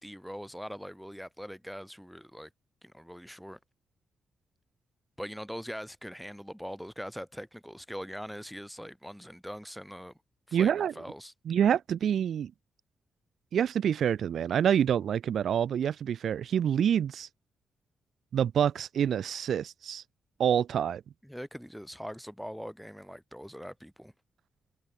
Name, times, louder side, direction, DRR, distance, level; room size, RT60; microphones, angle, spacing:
voice 1, 0.0-2.5 2.8-3.6 5.2-10.2 10.5-11.3 21.2-24.1, equal, ahead, 3.2 m, -42 dB
voice 2, 10.5-10.9 11.5-12.5 13.5-17.3 18.3-20.0 20.4-21.0, right 9 dB, 70° right, 0.8 m, -27 dB
cardioid pair, 100°, 0 cm